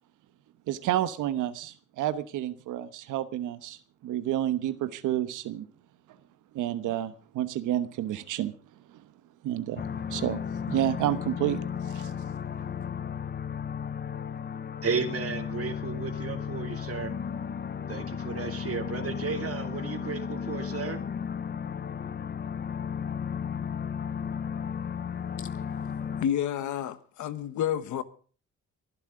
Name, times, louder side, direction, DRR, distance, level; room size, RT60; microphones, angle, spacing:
voice 1, 0.7-5.6 6.5-8.5 9.4-9.8 10.1-10.4 10.7-11.6 11.9-12.1, right 12 dB, 85° right, 1.1 m, -30 dB
sound 1, 9.8-26.3, left 7 dB, 35° left, 0.7 m, -34 dB
voice 2, 14.8-17.1 17.9-21.0, right 5 dB, 50° right, 2.7 m, -33 dB
voice 3, 26.2-28.0, left 10 dB, 75° left, 1.3 m, -29 dB
23.0 x 11.5 x 3.8 m
cardioid pair, 90°, 30 cm